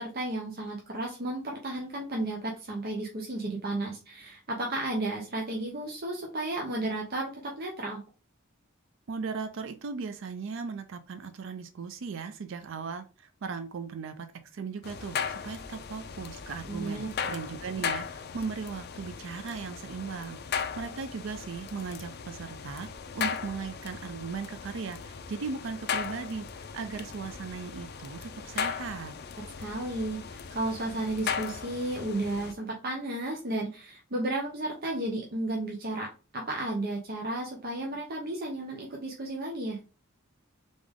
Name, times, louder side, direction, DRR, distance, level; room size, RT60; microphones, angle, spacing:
voice 1, 0.0-8.0 16.7-17.1 29.6-36.1 36.3-39.8, right 2 dB, 50° right, -1 dB, 0.9 m, -33 dB
voice 2, 9.1-14.3 14.5-22.9 23.1-29.1, right 5 dB, 70° right, 9 dB, 0.5 m, -37 dB
sound 1, 14.8-32.5, left 7 dB, 50° left, 0.4 m, -37 dB
3.8 x 3.5 x 3.6 m, 0.33 s
head